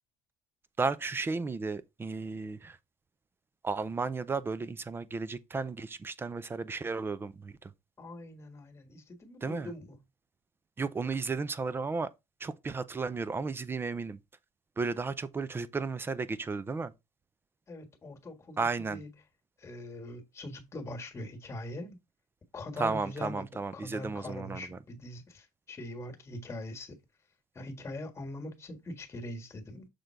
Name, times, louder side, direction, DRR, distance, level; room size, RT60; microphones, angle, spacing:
voice 1, 0.8-2.8 3.6-7.7 9.4-9.7 10.8-12.1 12.4-14.2 14.8-16.9 18.6-19.0 22.8-24.8, right 4 dB, 15° right, 0.5 m, -34 dB
voice 2, 8.0-10.0 17.7-18.6 18.9-19.1 19.6-22.0 22.5-23.5 23.7-27.0 27.5-29.9, left 1 dB, 20° left, 1.6 m, -42 dB
6.6 x 3.8 x 4.5 m
cardioid pair, 140°, 14 cm